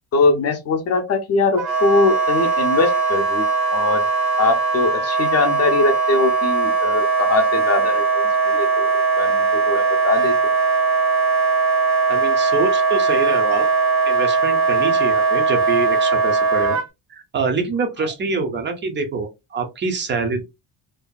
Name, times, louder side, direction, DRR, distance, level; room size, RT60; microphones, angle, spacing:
voice 1, 0.1-3.4 3.7-4.0 4.4-10.4, left 3 dB, 35° left, 0.5 m, -21 dB
Wind instrument woodwind instrument, 1.6-16.9, right 4 dB, 65° right, 0.8 m, -19 dB
voice 2, 12.1-13.7 14.1-16.8 17.1-20.4, right 4 dB, 25° right, 0.4 m, -25 dB
2.7 x 2.1 x 2.2 m
cardioid pair, 165°, 46 cm